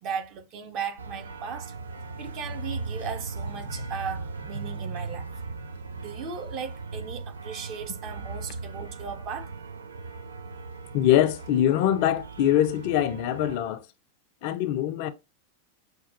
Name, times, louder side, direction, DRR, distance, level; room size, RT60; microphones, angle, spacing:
voice 1, 0.0-1.7 2.2-9.5 10.8-11.1, right 6 dB, 40° right, 0.7 m, -37 dB
sound 1, 1.0-13.6, right 3 dB, 75° right, 0.4 m, -38 dB
voice 2, 10.9-13.8 14.4-15.1, left 12 dB, 45° left, 0.4 m, -23 dB
5.9 x 2.3 x 2.6 m
figure-of-eight pair, 90°, 0 cm